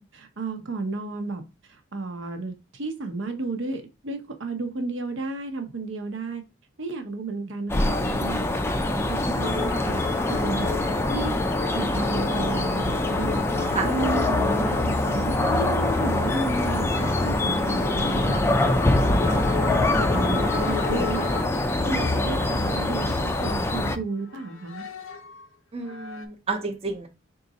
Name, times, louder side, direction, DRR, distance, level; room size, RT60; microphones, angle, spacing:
voice 1, 0.0-6.4 6.8-8.4 8.9-10.7 11.1-11.4 11.7-13.5 13.8-18.6 19.0-21.3 21.8-24.8, right 3 dB, 70° right, 0.8 m, -33 dB
sound 1, 7.7-24.0, left 2 dB, 15° left, 0.3 m, -24 dB
sound 2, 9.4-23.9 24.3-25.5 25.8-26.3, left 6 dB, 85° left, 0.7 m, -35 dB
voice 2, 25.7-27.1, right 4 dB, 30° right, 0.6 m, -30 dB
3.8 x 2.4 x 4.0 m
head